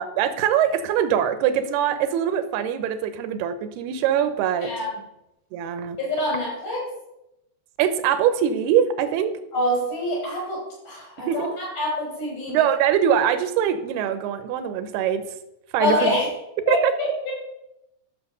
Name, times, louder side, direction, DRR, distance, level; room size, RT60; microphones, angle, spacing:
voice 1, 0.0-4.7 5.5-6.0 7.8-9.4 11.2-11.5 12.5-15.2 15.7-16.1 16.7-16.9, right 9 dB, 85° right, 11 dB, 2.8 m, -22 dB
voice 2, 6.0-6.8 9.5-12.6 15.8-16.3 16.7-17.3, left 1 dB, 65° left, -3 dB, 6.5 m, -26 dB
12.5 x 6.5 x 6.8 m, 0.87 s
omnidirectional pair, 4.6 m